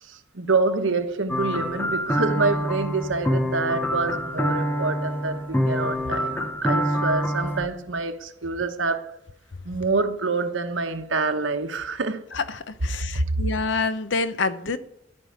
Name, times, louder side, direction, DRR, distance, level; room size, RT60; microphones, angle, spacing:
voice 1, 0.0-9.2 9.6-12.2 13.1-13.3, right 3 dB, 85° right, 1.2 m, -26 dB
sound 1, 1.3-7.7, equal, 10° left, 1.0 m, -26 dB
voice 2, 12.3-14.8, left 4 dB, 70° left, 0.8 m, -27 dB
13.0 x 5.5 x 9.4 m
head